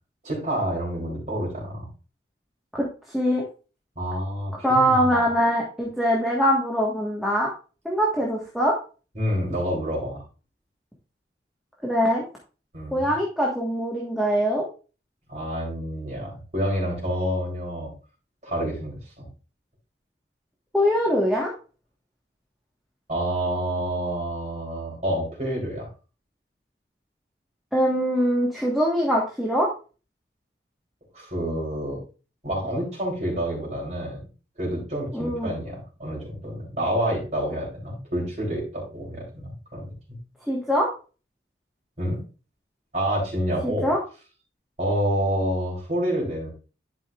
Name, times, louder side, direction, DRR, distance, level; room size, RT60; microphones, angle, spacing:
voice 1, 0.2-1.9 4.0-5.2 9.1-10.2 12.7-13.1 15.3-17.9 18.4-19.3 23.1-25.9 31.1-32.0 32.4-34.2 34.6-40.2 42.0-42.2 42.9-43.9 44.8-46.5, equal, 45° right, -3 dB, 3.9 m, -28 dB
voice 2, 2.7-3.4 4.6-7.5 7.8-8.8 11.8-12.2 12.9-14.7 20.7-21.5 27.7-29.7 35.1-35.5 40.5-40.9 43.6-44.0, equal, ahead, -4 dB, 1.4 m, -23 dB
11.5 x 5.6 x 2.4 m, 0.34 s
head